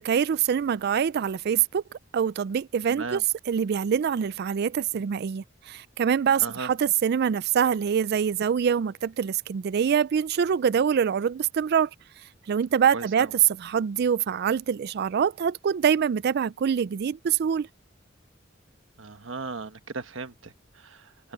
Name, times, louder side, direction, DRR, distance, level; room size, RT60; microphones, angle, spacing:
voice 1, 0.0-1.8 2.1-11.9 12.5-17.7, right 7 dB, 55° right, 0.4 m, -24 dB
voice 2, 2.9-3.2 6.4-6.7 12.9-13.3 19.0-21.3, right 3 dB, 80° right, 1.4 m, -37 dB
head